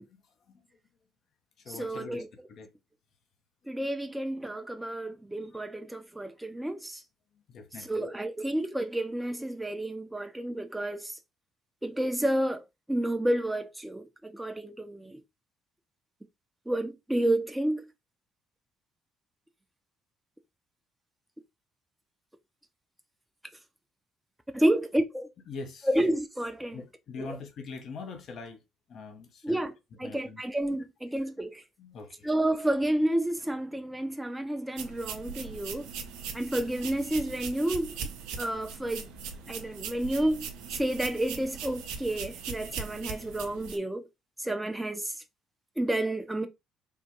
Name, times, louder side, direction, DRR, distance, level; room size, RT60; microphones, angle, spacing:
voice 1, 0.1-0.6 1.6-2.2 2.5-2.7 3.6-3.9 5.5-5.6 7.3-8.1 24.5-24.7 25.5-25.9 26.7-29.7 30.0-30.4 31.1-31.3 31.8-32.3, left 4 dB, 60° left, 0.6 m, -44 dB
voice 2, 1.7-2.3 3.7-7.0 7.8-11.1 11.8-12.6 12.9-15.2 16.7-17.9 24.5-25.3 25.8-26.8 27.2-27.4 29.4-29.7 30.0-31.6 32.2-35.9 36.3-38.0 38.4-39.1 39.5-40.5 40.7-44.0 44.4-45.1 45.8-46.5, right 1 dB, 10° right, 0.5 m, -30 dB
sound 1, 34.8-43.8, right 6 dB, 75° right, 0.5 m, -40 dB
3.4 x 2.2 x 2.8 m
hypercardioid pair, 50°, 0 cm